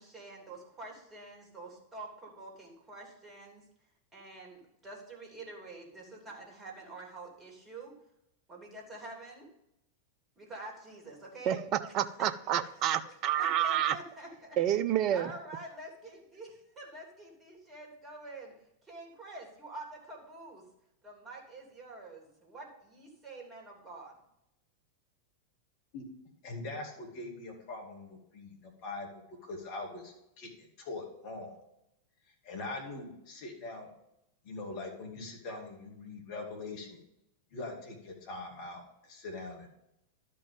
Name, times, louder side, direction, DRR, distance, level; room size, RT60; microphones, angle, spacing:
voice 1, 0.0-3.6 4.1-7.9 8.5-9.5 10.4-11.6 12.2-12.3 12.6-12.7 13.0-14.6 15.1-18.5 18.8-20.6 21.0-24.1, right 2 dB, 20° right, -1 dB, 3.2 m, -47 dB
voice 2, 11.5-14.0 14.6-15.3, right 10 dB, 35° right, 13 dB, 0.6 m, -29 dB
voice 3, 26.4-31.6 32.4-33.9 34.4-37.0 37.5-39.7, left 2 dB, 45° left, 0 dB, 2.7 m, -42 dB
12.0 x 5.3 x 5.3 m, 0.83 s
figure-of-eight pair, 90°, 0 cm